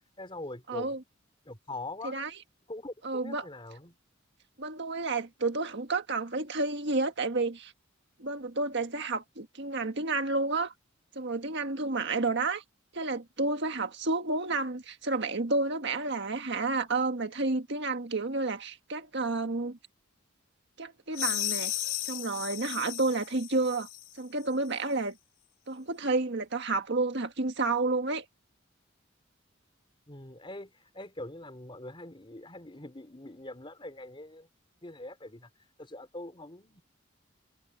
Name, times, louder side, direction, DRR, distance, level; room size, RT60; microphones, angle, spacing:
voice 1, 0.2-0.9 1.5-2.2 2.7-4.0 30.1-34.5 34.8-35.5 35.8-36.8, left 2 dB, 25° left, 3.6 m, -43 dB
voice 2, 0.7-1.0 2.0-2.3 3.0-3.5 4.6-7.7 8.2-10.7 11.1-12.6 12.9-19.8 20.8-21.7 22.0-23.9 24.1-25.2 25.7-28.2, right 3 dB, 60° right, 1.6 m, -30 dB
sound 1, 21.1-24.1, left 13 dB, 85° left, 2.2 m, -34 dB
head